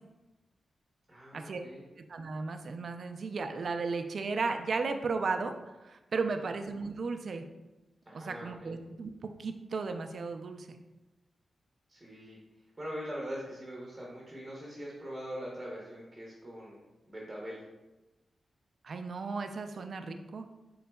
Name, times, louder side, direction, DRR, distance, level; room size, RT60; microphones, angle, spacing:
voice 1, 1.1-1.9 6.2-6.5 8.1-8.7 11.9-12.4 12.8-17.6, equal, 15° right, -4 dB, 0.8 m, -42 dB
voice 2, 2.1-5.6 5.8-7.5 8.1-10.8 18.8-20.5, right 4 dB, 55° right, 7 dB, 0.3 m, -35 dB
4.2 x 3.8 x 2.2 m, 1.0 s
wide cardioid pair, 130°, 0 cm